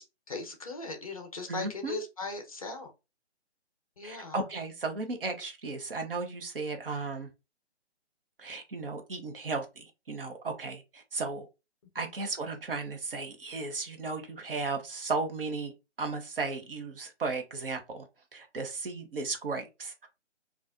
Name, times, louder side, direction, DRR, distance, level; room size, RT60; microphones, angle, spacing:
voice 1, 0.0-2.9 4.0-4.4 12.0-12.1, left 3 dB, 30° left, 0.6 m, -39 dB
voice 2, 1.5-2.0 4.0-7.3 8.4-11.5 11.9-15.7 16.0-18.0 18.3-20.1, right 3 dB, 50° right, 0.9 m, -35 dB
3.9 x 2.4 x 2.5 m
figure-of-eight pair, 145°, 35 cm